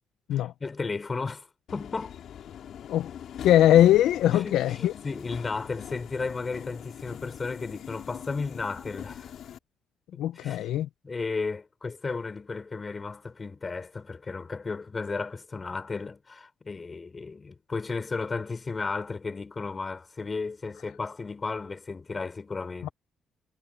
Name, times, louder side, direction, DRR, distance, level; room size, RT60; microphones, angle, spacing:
voice 1, 0.3-1.5 1.7-2.2 4.3-9.3 10.1-10.7 11.0-22.9, left 4 dB, 30° left, 4.4 m, -34 dB
Subway metro underground, 1.7-9.6, left 9 dB, 70° left, 2.7 m, -42 dB
voice 2, 3.4-4.9 10.2-10.9 22.8-22.9, left 12 dB, 85° left, 0.5 m, -21 dB
cardioid pair, 90°, 0 cm